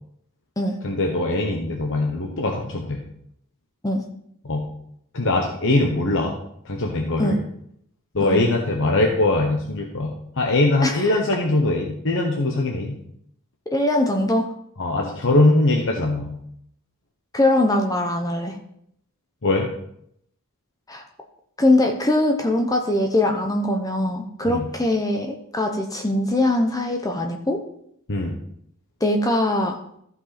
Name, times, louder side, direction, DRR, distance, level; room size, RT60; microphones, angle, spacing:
voice 1, 0.8-3.0 4.4-4.6 5.1-6.3 6.6-7.4 8.1-13.0 14.8-16.3 19.4-19.7 24.5-24.7 28.1-28.4, left 2 dB, 60° left, 1 dB, 1.1 m, -22 dB
voice 2, 13.7-14.5 17.3-18.6 20.9-21.0 21.6-27.6 29.0-29.8, left 1 dB, 15° left, 3 dB, 0.8 m, -22 dB
14.5 x 5.3 x 4.3 m, 0.72 s
head